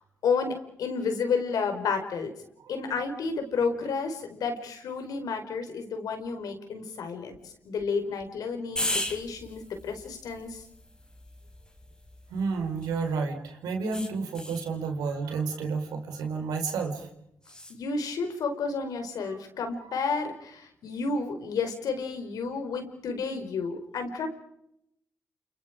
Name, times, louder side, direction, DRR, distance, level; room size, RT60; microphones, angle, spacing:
voice 1, 0.2-2.3 2.7-10.6 17.7-24.3, left 5 dB, 75° left, 6 dB, 4.6 m, -31 dB
sound 1, 8.8-13.2 13.9-14.7 17.4-17.8, left 1 dB, 10° left, 4.5 m, -37 dB
voice 2, 12.3-17.1 19.3-19.4 19.8-20.0, right 4 dB, 80° right, 5 dB, 4.7 m, -31 dB
29.5 x 28.0 x 5.1 m, 0.78 s
supercardioid pair, 50°, 6 cm